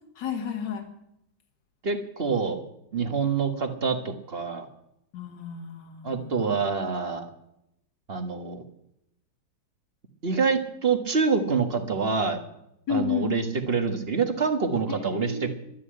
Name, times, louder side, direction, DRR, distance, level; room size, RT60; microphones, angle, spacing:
voice 1, 0.2-0.9 5.1-6.6 12.9-13.3 15.1-15.5, left 7 dB, 60° left, 5 dB, 2.4 m, -31 dB
voice 2, 1.8-2.6 2.9-4.7 6.0-7.3 8.1-8.6 10.2-12.4 12.9-15.5, right 5 dB, 35° right, 7 dB, 1.4 m, -26 dB
12.5 x 10.5 x 8.7 m, 0.79 s
omnidirectional pair, 2.2 m